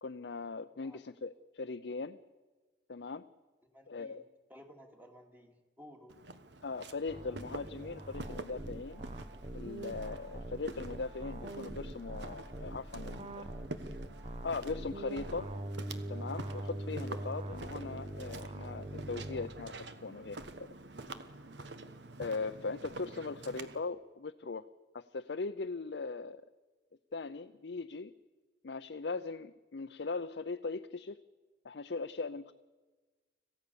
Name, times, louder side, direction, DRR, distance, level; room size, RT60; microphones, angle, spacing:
voice 1, 0.0-2.2 2.9-3.3 3.9-4.2 6.6-9.0 9.5-13.4 14.4-15.5 16.1-20.7 22.2-24.6 24.9-26.4 27.1-28.1 28.6-31.2 31.6-32.5, left 4 dB, 70° left, 8 dB, 0.6 m, -39 dB
voice 2, 3.7-6.2, equal, 10° right, 3 dB, 2.3 m, -56 dB
Walk footsteps, 6.1-23.8, right 2 dB, 75° right, 1.3 m, -48 dB
sound 1, 7.1-19.5, right 1 dB, 35° right, 1.1 m, -43 dB
26.5 x 16.0 x 7.0 m, 1.3 s
head